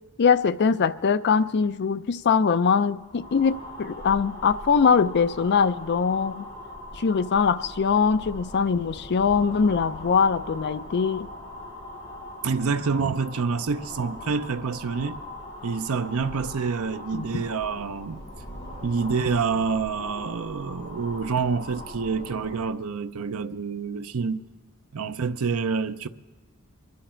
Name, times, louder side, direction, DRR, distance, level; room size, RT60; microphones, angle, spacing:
voice 1, 0.2-6.4 6.9-11.3 17.1-17.4, left 6 dB, 50° left, 0.4 m, -22 dB
sound 1, 2.9-22.8, left 1 dB, 20° left, 6.0 m, -41 dB
voice 2, 12.4-15.2 15.6-18.2 18.8-24.4 24.9-26.1, right 5 dB, 70° right, 0.6 m, -27 dB
24.5 x 11.5 x 4.4 m
head